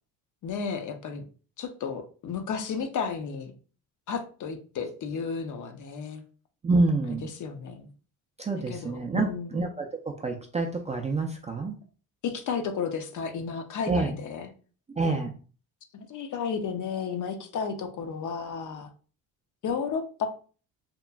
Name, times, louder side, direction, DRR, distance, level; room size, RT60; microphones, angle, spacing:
voice 1, 0.4-1.2 1.6-3.5 4.1-6.2 7.2-7.9 8.7-9.6 12.2-14.5 15.9-18.9 19.6-20.3, left 6 dB, 50° left, 7 dB, 0.6 m, -33 dB
voice 2, 6.6-7.3 8.4-11.8 13.9-14.1 15.0-15.4, right 3 dB, 20° right, 2 dB, 0.3 m, -27 dB
2.9 x 2.4 x 2.2 m, 0.39 s
cardioid pair, 90°, 38 cm